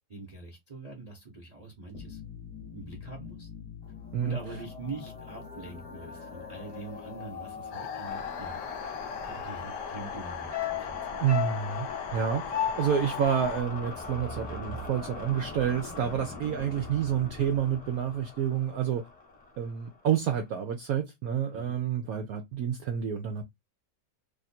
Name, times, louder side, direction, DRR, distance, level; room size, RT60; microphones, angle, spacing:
voice 1, 0.1-2.2 2.7-3.5 4.2-8.6 9.1-11.2 21.5-21.8, right 3 dB, 30° right, 0.8 m, -44 dB
sound 1, 1.9-20.4, left 3 dB, 30° left, 0.9 m, -42 dB
sound 2, 7.7-13.6, left 8 dB, 75° left, 1.2 m, -39 dB
sound 3, 10.5-14.9 15.2-15.3, left 11 dB, 50° left, 1.2 m, -35 dB
voice 2, 11.2-11.9 12.1-19.1 19.6-23.4, right 8 dB, 70° right, 0.9 m, -29 dB
3.0 x 2.5 x 4.1 m
omnidirectional pair, 1.9 m